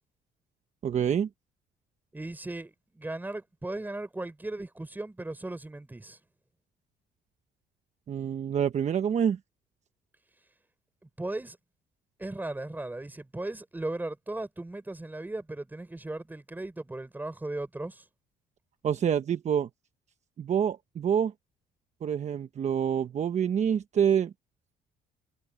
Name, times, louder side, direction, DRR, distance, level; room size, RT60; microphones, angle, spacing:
voice 1, 0.8-1.3 8.1-9.4 18.8-19.7 20.4-21.3 22.0-24.3, right 8 dB, 45° right, 1.1 m, -27 dB
voice 2, 2.1-6.2 11.0-11.6 12.2-18.1, right 2 dB, 10° right, 4.3 m, -37 dB
cardioid pair, 110°, 17 cm